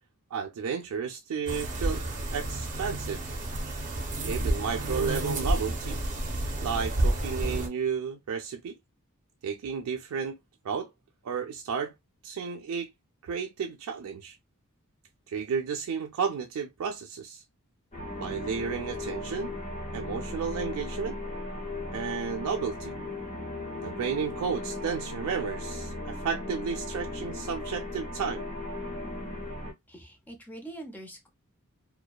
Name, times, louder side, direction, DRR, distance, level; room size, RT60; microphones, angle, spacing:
voice 1, 0.3-2.0 2.3-3.2 4.2-6.0 6.6-8.8 9.4-10.4 10.6-10.9 11.2-11.9 12.2-12.9 13.2-14.4 15.3-17.4 18.1-19.5 19.9-21.2 21.9-22.9 23.8-28.4, right 6 dB, 80° right, 0.4 m, -32 dB
sound 1, 1.5-7.7, right 1 dB, 35° right, 0.6 m, -30 dB
sound 2, 17.9-29.7, left 2 dB, 30° left, 0.9 m, -37 dB
voice 2, 29.9-31.3, right 1 dB, 10° left, 0.6 m, -44 dB
2.6 x 2.2 x 2.2 m
head